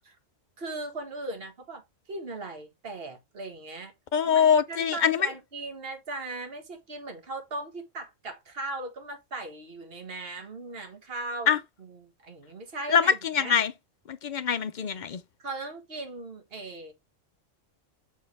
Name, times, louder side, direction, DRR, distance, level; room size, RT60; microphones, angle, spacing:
voice 1, 0.6-3.9 4.2-11.5 11.8-13.5 15.4-16.9, right 2 dB, 50° right, 1.8 m, -38 dB
voice 2, 4.1-5.3 11.5-11.6 12.9-13.7 14.1-15.2, left 7 dB, 60° left, 0.5 m, -23 dB
7.2 x 4.2 x 3.4 m
omnidirectional pair, 1.3 m